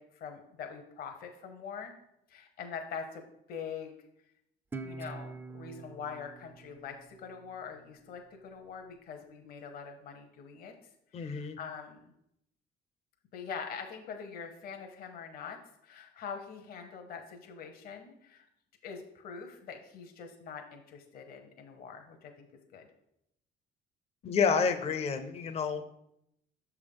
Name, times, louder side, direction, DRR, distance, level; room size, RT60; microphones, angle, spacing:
voice 1, 0.0-1.9 2.3-4.0 4.8-10.7 11.1-12.1 13.3-18.5 18.8-22.5 22.7-22.9, left 6 dB, 60° left, 4 dB, 0.9 m, -44 dB
Guitar, 4.7-7.9, right 3 dB, 15° right, 0.4 m, -45 dB
voice 2, 11.1-11.6 24.2-25.9, left 5 dB, 40° left, 8 dB, 0.5 m, -29 dB
6.4 x 3.5 x 5.3 m, 0.79 s
cardioid pair, 110°, 17 cm